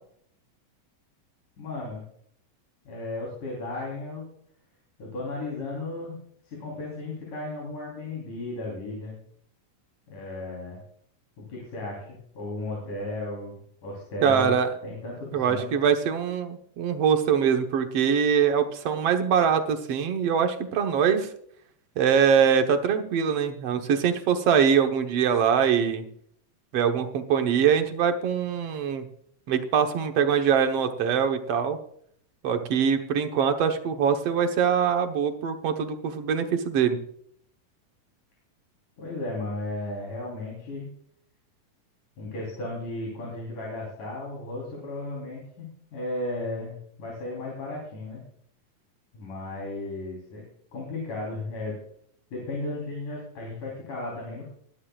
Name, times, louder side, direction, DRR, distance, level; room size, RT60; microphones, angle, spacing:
voice 1, 1.6-2.0 2.9-4.3 5.0-6.1 6.4-9.2 10.1-10.8 11.4-14.5 14.8-15.7 39.0-40.9 42.2-48.2 49.1-50.4 50.7-51.8 52.3-54.5, left 2 dB, 70° left, -3 dB, 5.2 m, -35 dB
voice 2, 14.2-14.7 15.3-21.3 22.0-26.1 26.7-29.0 29.5-31.8 32.4-37.0, right 7 dB, 60° right, 6 dB, 1.8 m, -23 dB
21.0 x 11.5 x 2.4 m, 0.65 s
omnidirectional pair, 3.8 m